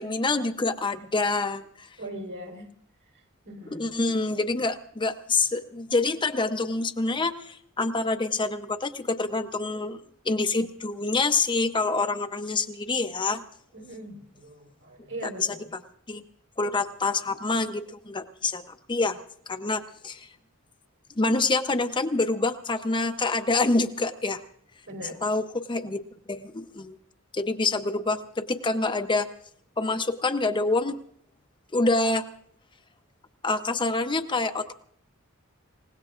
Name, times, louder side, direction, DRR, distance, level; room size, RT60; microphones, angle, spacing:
voice 1, 0.0-1.9 3.7-10.0 10.2-13.4 15.4-15.5 16.1-16.2 16.6-18.6 18.9-19.2 19.5-20.3 21.2-24.4 25.2-26.0 26.3-27.0 27.3-29.3 29.8-31.0 31.7-32.3 33.4-34.7, left 3 dB, 25° left, 7 dB, 0.7 m, -26 dB
voice 2, 2.0-2.7 3.4-3.9 13.7-15.7 20.3-20.4 24.9-25.2, right 1 dB, 65° right, 1 dB, 3.4 m, -40 dB
28.0 x 17.5 x 2.4 m, 0.63 s
head